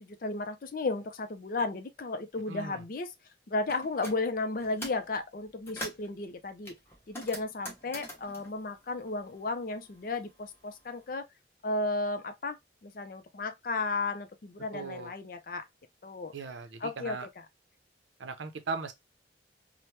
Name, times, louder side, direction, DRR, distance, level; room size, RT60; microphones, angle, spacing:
voice 1, 0.0-3.1 3.5-6.8 7.1-11.3 11.6-15.7 16.0-16.3 16.8-17.3, left 3 dB, 50° left, 0.5 m, -34 dB
voice 2, 2.5-2.8 14.7-15.1 16.3-17.3 18.2-18.9, right 4 dB, 90° right, 0.6 m, -38 dB
sound 1, 3.7-4.2 4.6-5.1 5.4-6.1 6.6-9.6 9.9-11.0, equal, 15° left, 0.8 m, -44 dB
2.9 x 2.1 x 3.2 m
head